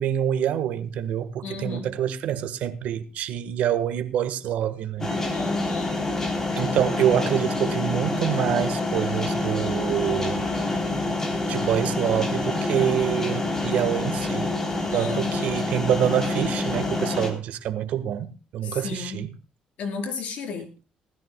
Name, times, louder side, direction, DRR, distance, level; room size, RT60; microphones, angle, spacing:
voice 1, 0.0-5.2 6.6-10.5 11.5-14.5 14.9-19.3, right 10 dB, 75° right, 1.4 m, -26 dB
voice 2, 1.4-1.9 5.3-6.0 14.9-15.6 18.6-19.2 19.8-20.7, left 4 dB, 65° left, 4.3 m, -32 dB
sound 1, 5.0-17.3, left 2 dB, 20° left, 3.4 m, -27 dB
19.5 x 14.0 x 2.2 m
cardioid pair, 150°, 2 cm